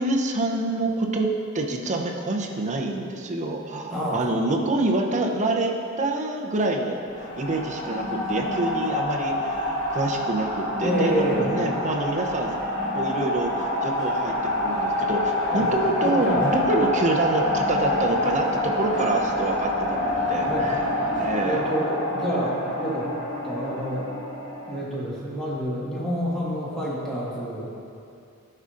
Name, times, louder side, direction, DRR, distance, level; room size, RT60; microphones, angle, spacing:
voice 1, 0.0-7.0 7.4-12.6 12.9-14.3 14.6-20.0 20.3-20.8 21.2-21.7, right 2 dB, 35° right, 1 dB, 0.6 m, -26 dB
sound 1, 7.1-24.8, left 1 dB, 40° left, 1.5 m, -27 dB
voice 2, 10.8-11.5 15.5-15.7 16.0-16.4 20.5-20.7 21.4-23.1 23.4-24.2 24.7-27.7, right 1 dB, ahead, -8 dB, 1.6 m, -28 dB
13.0 x 5.5 x 2.5 m, 2.6 s
head